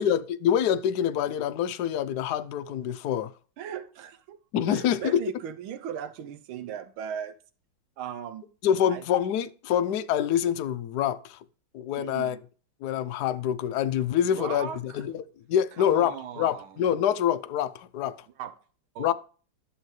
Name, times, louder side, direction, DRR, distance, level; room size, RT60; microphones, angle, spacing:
voice 1, 0.0-3.3 4.5-5.2 8.6-11.4 11.7-12.4 12.8-18.2 19.0-19.1, left 9 dB, 70° left, 1.0 m, -26 dB
voice 2, 3.6-4.4 4.7-7.3 8.0-8.5 8.9-9.0 12.0-12.4 14.2-15.0 15.8-16.8 18.4-18.6 18.9-19.1, right 8 dB, 85° right, 1.6 m, -38 dB
11.5 x 7.4 x 3.2 m
omnidirectional pair, 2.2 m